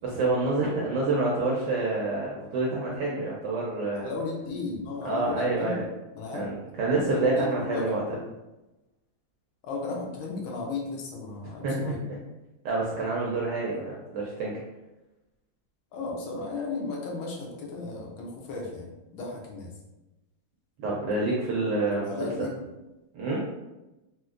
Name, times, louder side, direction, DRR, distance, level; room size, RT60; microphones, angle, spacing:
voice 1, 0.0-4.1 5.0-5.8 6.3-8.0 11.6-12.2 12.6-14.6 20.8-22.3 23.1-23.4, right 2 dB, 75° right, -4 dB, 1.0 m, -27 dB
voice 2, 4.0-5.9 6.1-6.6 6.9-8.2 9.6-12.0 15.9-19.7 22.0-22.6, left 3 dB, 75° left, -1 dB, 1.4 m, -35 dB
4.2 x 2.1 x 2.4 m, 1.0 s
omnidirectional pair, 2.3 m